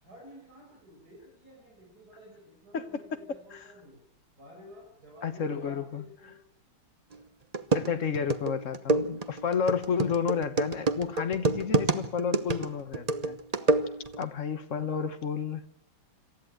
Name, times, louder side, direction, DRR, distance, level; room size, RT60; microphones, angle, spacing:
voice 1, 0.0-4.0 4.4-6.4 8.7-8.9 11.4-11.7 13.5-13.9, equal, 45° right, 7.4 m, -52 dB
voice 2, 5.2-6.0 7.7-13.4 14.2-15.6, left 6 dB, 45° left, 1.3 m, -31 dB
sound 1, 7.1-7.2 7.5-14.2, right 3 dB, 75° right, 0.3 m, -28 dB
27.0 x 13.5 x 9.0 m
omnidirectional pair, 2.3 m